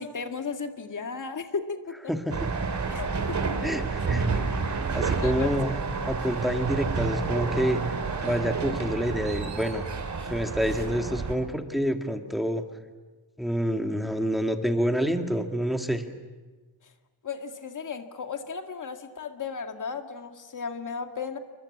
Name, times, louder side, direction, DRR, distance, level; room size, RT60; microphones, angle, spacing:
voice 1, 0.0-2.1 2.9-3.7 5.2-5.5 17.2-21.4, left 5 dB, 50° left, 6 dB, 2.0 m, -35 dB
voice 2, 2.1-2.5 3.6-5.8 6.0-7.8 8.2-9.8 10.3-12.6 13.4-16.0, equal, ahead, 5 dB, 1.9 m, -28 dB
sound 1, 2.3-11.3, right 4 dB, 45° right, 3.1 m, -29 dB
29.0 x 24.0 x 8.6 m, 1.3 s
wide cardioid pair, 170°, 40 cm